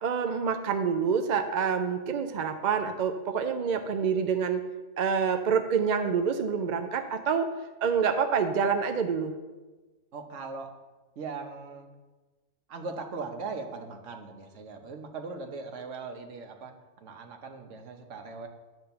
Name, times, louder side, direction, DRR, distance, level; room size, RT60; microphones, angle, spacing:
voice 1, 0.0-4.6 5.0-7.5 7.8-9.3, right 6 dB, 55° right, 7 dB, 0.5 m, -27 dB
voice 2, 10.1-10.7 11.2-11.9 12.7-16.7 17.0-18.5, right 4 dB, 85° right, 4 dB, 1.3 m, -39 dB
10.5 x 3.5 x 6.8 m, 1.2 s
omnidirectional pair, 1.2 m